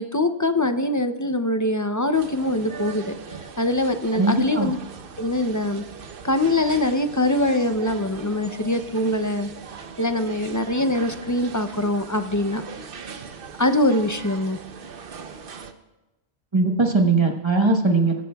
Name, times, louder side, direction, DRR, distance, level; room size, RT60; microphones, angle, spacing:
voice 1, 0.0-3.1 3.6-4.8 5.2-5.8 6.2-9.5 10.0-12.6 13.6-14.6, left 1 dB, 25° left, 8 dB, 0.4 m, -23 dB
sound 1, 2.1-15.7, right 5 dB, 60° right, 0.9 m, -40 dB
voice 2, 4.1-4.7 16.5-18.1, right 3 dB, 25° right, 2 dB, 1.2 m, -20 dB
23.0 x 14.0 x 2.3 m, 1.1 s
omnidirectional pair, 1.1 m